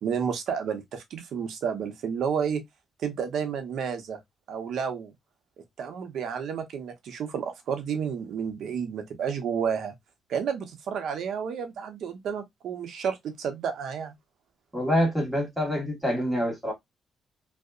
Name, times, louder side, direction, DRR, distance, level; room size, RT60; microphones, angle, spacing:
voice 1, 0.0-2.6 3.0-4.2 4.5-5.1 5.8-9.9 10.3-14.2, right 7 dB, 70° right, 0.7 m, -31 dB
voice 2, 14.7-16.7, equal, 5° right, 1.5 m, -26 dB
2.7 x 2.0 x 2.4 m
cardioid pair, 90°, 0 cm